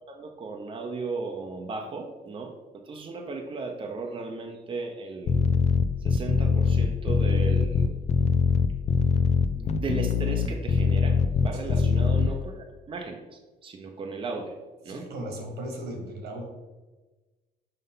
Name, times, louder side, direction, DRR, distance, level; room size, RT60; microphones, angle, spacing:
voice 1, 0.1-2.5 2.8-5.4 6.0-8.0 9.5-14.5 14.8-15.1, right 4 dB, 30° right, 2 dB, 0.8 m, -36 dB
sound 1, 5.3-12.3, left 5 dB, 40° left, 0.5 m, -22 dB
voice 2, 11.5-11.9 14.9-16.4, right 1 dB, 80° right, 2 dB, 1.9 m, -37 dB
5.6 x 5.4 x 3.9 m, 1.2 s
cardioid pair, 110°, 17 cm